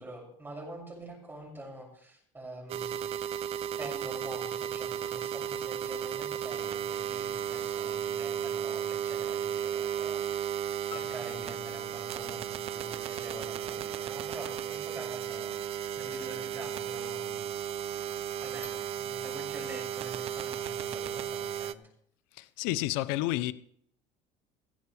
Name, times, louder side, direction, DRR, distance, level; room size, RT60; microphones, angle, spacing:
voice 1, 0.0-3.0 3.8-10.5 10.9-17.5 18.4-21.8, right 1 dB, 15° right, 6.8 m, -46 dB
sound 1, 2.7-21.7, right 9 dB, 45° right, 0.7 m, -34 dB
sound 2, 10.9-13.4, left 12 dB, 45° left, 0.7 m, -52 dB
voice 2, 22.3-23.5, left 16 dB, 80° left, 0.7 m, -30 dB
15.5 x 15.5 x 3.4 m
supercardioid pair, 115°, 14 cm